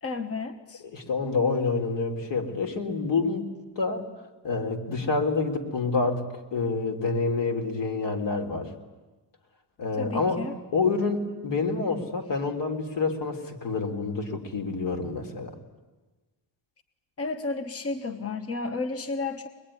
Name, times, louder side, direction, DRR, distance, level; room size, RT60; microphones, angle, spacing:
voice 1, 0.0-0.8 10.0-10.6 17.2-19.5, left 3 dB, 35° left, 8 dB, 1.3 m, -32 dB
voice 2, 0.9-3.5 3.8-4.0 4.4-6.2 6.5-8.7 9.8-10.4 10.7-15.5, left 4 dB, 75° left, 4 dB, 3.5 m, -27 dB
25.0 x 21.0 x 10.0 m, 1.2 s
cardioid pair, 105°, 43 cm